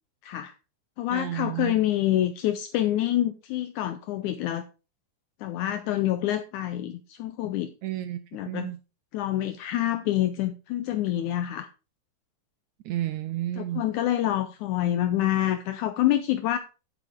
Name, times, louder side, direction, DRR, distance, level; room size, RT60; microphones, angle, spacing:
voice 1, 0.2-0.5 1.0-4.6 5.4-7.7 8.3-8.7 9.1-11.7 13.6-16.6, left 13 dB, 80° left, 10 dB, 1.9 m, -27 dB
voice 2, 1.1-1.7 7.8-8.8 12.8-13.8, right 13 dB, 75° right, 12 dB, 1.7 m, -31 dB
9.3 x 9.0 x 3.6 m, 0.31 s
omnidirectional pair, 4.0 m